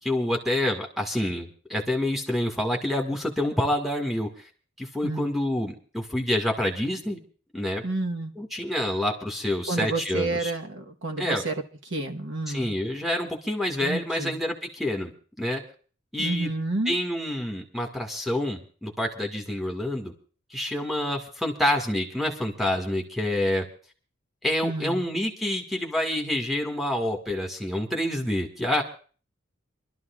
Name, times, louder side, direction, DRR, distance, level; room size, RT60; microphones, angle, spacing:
voice 1, 0.0-4.3 4.8-7.2 7.5-7.8 8.4-10.5 11.2-11.4 12.5-15.1 15.4-15.6 16.1-16.5 16.9-20.1 20.5-23.7 24.4-28.8, left 1 dB, ahead, 1 dB, 1.9 m, -27 dB
voice 2, 7.8-8.3 9.7-11.5 11.9-12.8 13.8-14.4 16.2-17.0 24.6-25.0, right 2 dB, 60° right, 2 dB, 1.3 m, -30 dB
27.0 x 12.5 x 2.4 m, 0.38 s
head